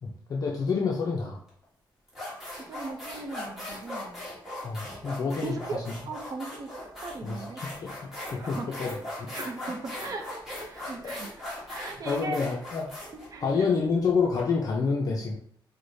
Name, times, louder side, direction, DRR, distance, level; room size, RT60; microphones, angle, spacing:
voice 1, 0.0-1.4 4.6-5.8 7.2-7.5 7.8-9.3 11.0-11.2 12.1-12.9 13.4-15.4, left 5 dB, 45° left, -1 dB, 0.4 m, -28 dB
sound 1, 1.5-1.6 2.1-14.4, left 1 dB, 5° right, 1.2 m, -39 dB
voice 2, 2.5-4.2 5.4-6.7 7.0-7.6 8.4-8.7 9.3-10.4 10.7-11.3 11.7-12.4 13.1-13.7, right 3 dB, 45° right, 4 dB, 0.5 m, -38 dB
4.7 x 2.1 x 2.6 m, 0.64 s
wide cardioid pair, 155°, 9 cm